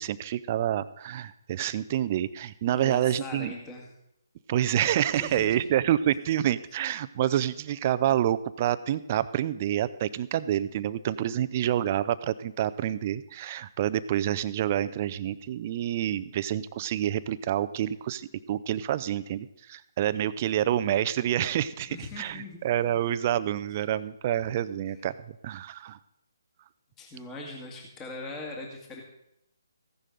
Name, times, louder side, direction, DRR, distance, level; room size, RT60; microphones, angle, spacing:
voice 1, 0.0-3.5 4.5-26.0, right 11 dB, 30° right, 14 dB, 0.5 m, -28 dB
voice 2, 2.7-3.9 5.1-5.6 21.9-22.6 27.0-29.0, left 2 dB, 15° left, 0 dB, 1.9 m, -40 dB
15.0 x 11.0 x 3.9 m, 0.79 s
figure-of-eight pair, 150°, 2 cm